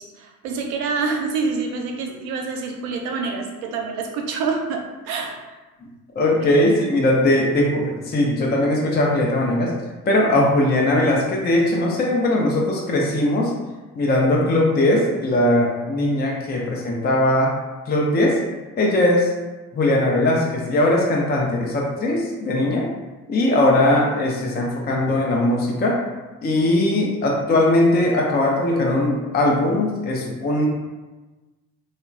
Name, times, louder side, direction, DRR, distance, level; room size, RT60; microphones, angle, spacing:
voice 1, 0.0-5.5, right 4 dB, 80° right, 2 dB, 0.5 m, -27 dB
voice 2, 6.1-9.7 10.1-13.5 13.9-17.5 17.9-18.4 18.8-19.3 19.7-22.9 23.3-26.0 26.4-30.7, left 1 dB, 25° left, -1 dB, 0.5 m, -19 dB
3.0 x 2.1 x 2.5 m, 1.2 s
hypercardioid pair, 50°, 42 cm